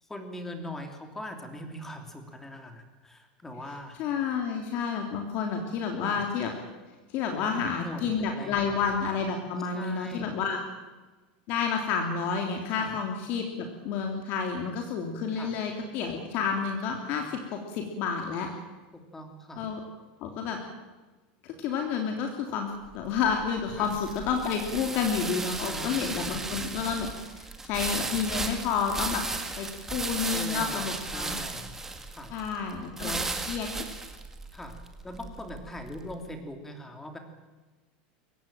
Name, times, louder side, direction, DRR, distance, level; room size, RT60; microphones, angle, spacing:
voice 1, 0.0-4.0 6.0-6.2 7.3-8.8 9.7-10.4 12.7-12.9 15.3-15.5 18.9-19.7 23.8-23.9 25.7-26.6 30.3-31.7 32.1-32.3 33.0-33.3 34.5-37.2, left 1 dB, 10° left, 6 dB, 3.1 m, -41 dB
voice 2, 4.0-6.5 7.1-10.6 11.5-18.5 19.6-19.8 20.2-20.6 21.4-29.2 29.6-31.4 32.3-33.1 33.5-33.7, left 6 dB, 45° left, 3 dB, 3.1 m, -30 dB
sound 1, 22.9-36.1, right 3 dB, 10° right, 2.0 m, -35 dB
23.0 x 17.5 x 9.2 m, 1.3 s
supercardioid pair, 160°, 4 cm